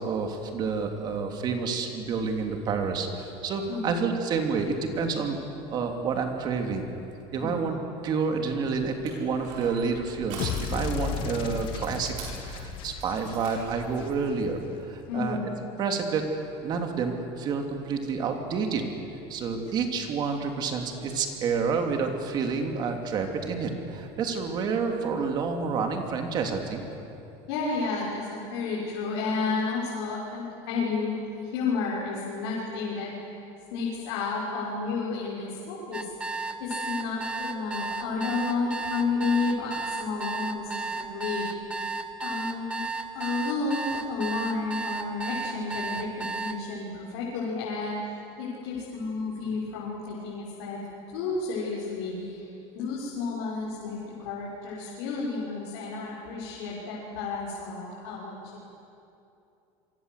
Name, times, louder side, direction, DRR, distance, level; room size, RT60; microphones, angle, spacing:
voice 1, 0.0-5.4 5.7-6.9 7.3-7.8 8.0-12.1 12.4-15.4 15.8-18.8 19.3-26.8, right 5 dB, 30° right, 4 dB, 2.8 m, -29 dB
Crushing, 9.0-14.0, right 3 dB, 60° right, 7.7 m, -44 dB
sound 1, 10.4-14.6, left 6 dB, 40° left, 2.0 m, -35 dB
voice 2, 15.1-15.4 19.6-19.7 27.5-33.1 33.7-41.5 42.2-42.9 43.1-48.1 48.4-50.8 51.1-52.5 52.7-58.6, left 4 dB, 90° left, -5 dB, 6.3 m, -31 dB
sound 2, 35.9-46.6, right 3 dB, 10° right, 1.0 m, -33 dB
27.5 x 24.0 x 8.2 m, 2.7 s
cardioid pair, 175°, 13 cm